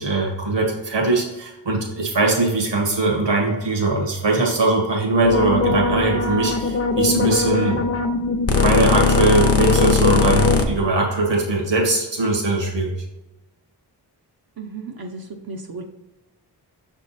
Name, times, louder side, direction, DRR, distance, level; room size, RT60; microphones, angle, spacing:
voice 1, 0.0-7.8 8.6-12.9, right 2 dB, 80° right, 0 dB, 1.5 m, -21 dB
sound 1, 5.2-10.6, left 4 dB, 35° left, 0.7 m, -19 dB
voice 2, 14.6-15.8, right 3 dB, 55° right, 2 dB, 0.6 m, -34 dB
6.4 x 3.6 x 4.1 m, 1.0 s
wide cardioid pair, 115°, 42 cm